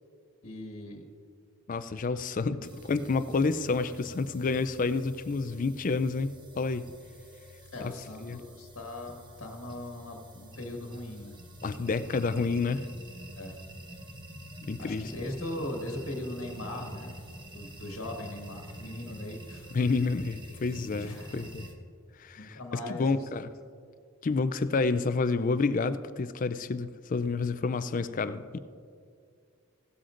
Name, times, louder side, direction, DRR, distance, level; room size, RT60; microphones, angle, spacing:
voice 1, 0.4-1.1 7.7-11.4 13.3-13.6 14.8-17.1 17.5-19.7 20.9-21.5 22.4-23.5, left 1 dB, 60° left, 2 dB, 1.4 m, -39 dB
voice 2, 1.7-6.9 7.8-7.9 8.2-8.4 11.6-12.9 14.6-15.1 19.7-21.7 22.2-23.5 24.2-28.6, left 4 dB, 35° left, 13 dB, 0.4 m, -29 dB
sound 1, 2.6-21.7, equal, 20° right, 0.9 m, -47 dB
16.5 x 12.5 x 2.5 m, 2.3 s
head